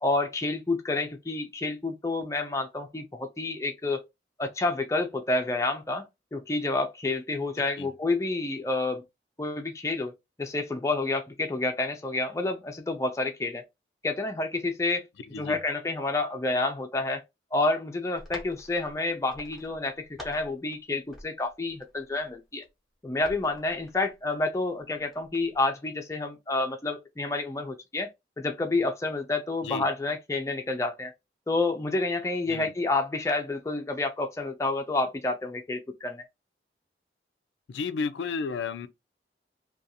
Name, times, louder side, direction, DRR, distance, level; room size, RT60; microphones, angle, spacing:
voice 1, 0.0-4.0 4.4-6.1 6.3-9.0 9.4-10.1 10.4-13.6 14.0-15.0 15.4-17.2 17.5-22.6 23.0-28.1 28.4-31.1 31.5-36.2, left 2 dB, 15° left, 0.4 m, -29 dB
voice 2, 15.3-15.6 29.6-29.9 32.5-32.7 37.7-38.9, left 5 dB, 85° left, 0.4 m, -32 dB
sound 1, 18.2-20.8 21.1-22.7 23.1-24.4 24.8-25.6, left 1 dB, ahead, 0.7 m, -48 dB
2.5 x 2.3 x 2.7 m
head